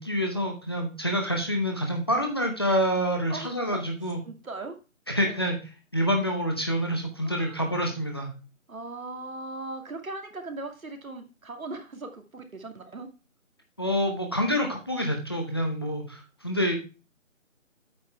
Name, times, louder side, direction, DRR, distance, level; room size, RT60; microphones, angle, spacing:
voice 1, 0.0-4.2 5.1-5.6 5.9-8.3 13.8-16.7, equal, 20° left, 2 dB, 0.8 m, -27 dB
voice 2, 3.3-3.8 4.2-4.8 5.2-5.5 7.2-7.7 8.7-13.1, right 3 dB, 90° right, 5 dB, 2.4 m, -39 dB
8.6 x 6.0 x 4.4 m, 0.32 s
figure-of-eight pair, 170°, 40 cm